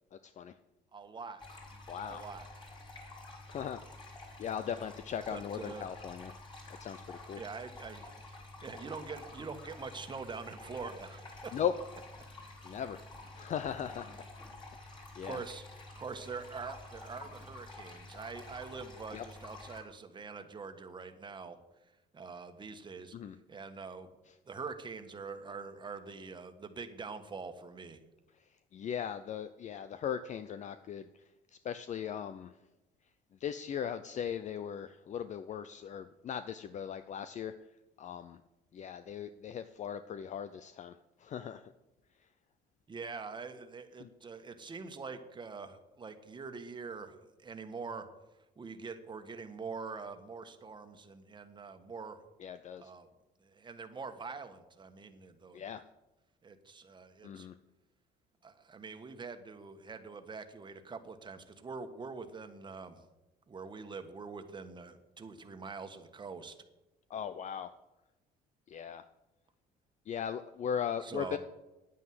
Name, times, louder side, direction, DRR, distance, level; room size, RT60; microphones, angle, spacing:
voice 1, 0.9-1.4 2.0-2.5 4.7-4.8 5.3-5.9 7.3-11.5 13.4-13.5 15.2-15.7 15.9-21.6 22.1-23.2 23.5-24.1 24.5-28.0 42.9-48.1 48.6-52.2 52.8-53.1 53.4-55.7 56.4-57.5 58.4-63.0 63.5-66.5 71.0-71.4, right 4 dB, 25° right, 7 dB, 1.5 m, -44 dB
sound 1, 1.4-19.8, left 2 dB, 25° left, 5.5 m, -50 dB
voice 2, 1.9-2.2 3.5-3.8 4.4-6.3 6.8-7.4 11.5-11.7 12.6-13.0 13.4-14.1 14.8-15.4 19.1-19.2 23.1-23.3 28.7-31.0 31.6-32.5 33.4-37.5 38.0-38.4 38.7-40.9 41.2-41.6 44.0-44.1 52.4-52.9 55.5-55.8 57.2-57.5 67.1-67.7 68.7-69.0 70.1-71.4, left 8 dB, 45° left, 12 dB, 0.6 m, -38 dB
10.0 x 9.3 x 7.8 m, 0.99 s
cardioid pair, 110°, 17 cm